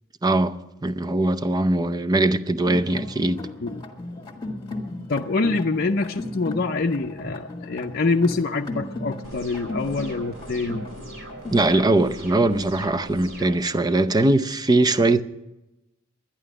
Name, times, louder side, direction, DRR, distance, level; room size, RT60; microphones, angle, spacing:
voice 1, 0.2-0.5 0.8-3.4 11.5-15.2, right 2 dB, 20° right, 0.5 m, -21 dB
sound 1, 2.6-11.9, left 2 dB, 20° left, 1.7 m, -35 dB
voice 2, 5.1-10.9, left 3 dB, 50° left, 0.6 m, -25 dB
sound 2, 9.2-13.6, right 1 dB, 65° right, 4.5 m, -40 dB
11.5 x 11.0 x 9.7 m
head